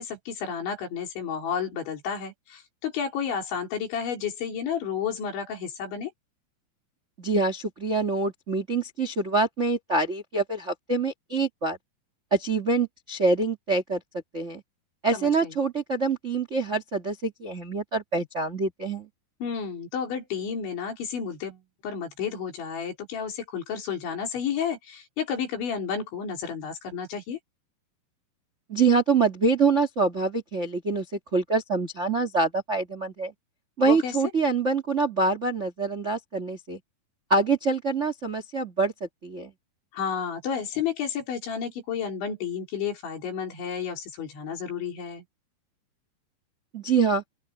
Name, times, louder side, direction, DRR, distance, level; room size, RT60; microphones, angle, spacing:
voice 1, 0.0-6.1 15.1-15.5 19.4-27.4 33.8-34.2 39.9-45.2, left 7 dB, 90° left, 6.6 m, -31 dB
voice 2, 7.2-11.8 12.3-14.0 14.3-14.6 15.0-19.1 28.7-33.3 33.8-36.8 37.3-39.5 46.7-47.2, right 4 dB, 60° right, 0.7 m, -25 dB
open air
omnidirectional pair, 5.1 m